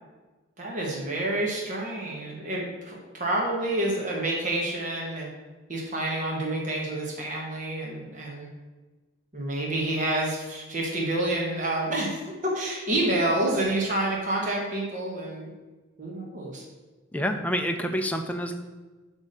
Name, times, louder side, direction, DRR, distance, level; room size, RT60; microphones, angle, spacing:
voice 1, 0.6-5.3 5.7-8.5 9.3-15.5 16.0-16.7, right 1 dB, 35° right, -2 dB, 1.5 m, -28 dB
voice 2, 17.1-18.5, equal, 5° left, 4 dB, 0.5 m, -28 dB
8.1 x 3.7 x 6.7 m, 1.2 s
head